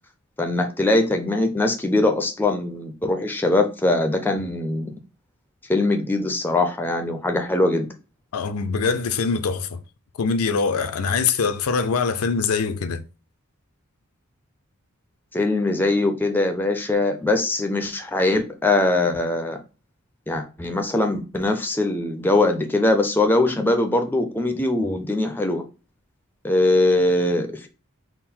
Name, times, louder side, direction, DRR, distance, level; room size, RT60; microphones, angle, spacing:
voice 1, 0.4-4.9 5.7-7.9 15.3-19.6 20.3-25.6 26.4-27.7, left 2 dB, 10° left, 0.4 m, -21 dB
voice 2, 8.3-9.8 10.2-13.0, left 5 dB, 75° left, 0.5 m, -23 dB
3.7 x 2.0 x 4.3 m
head